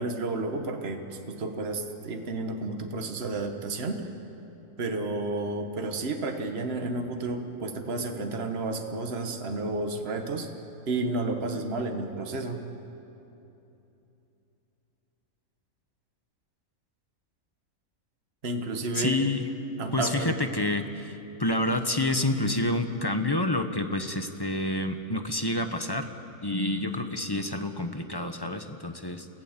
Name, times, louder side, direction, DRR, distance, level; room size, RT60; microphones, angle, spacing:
voice 1, 0.0-4.0 4.8-10.5 10.9-12.6 18.4-19.2 19.8-20.4, right 2 dB, 45° right, 4 dB, 1.6 m, -31 dB
voice 2, 18.9-19.5 19.9-26.1 26.4-29.3, left 1 dB, 20° left, 7 dB, 0.9 m, -28 dB
28.0 x 17.0 x 7.4 m, 2.9 s
omnidirectional pair, 1.5 m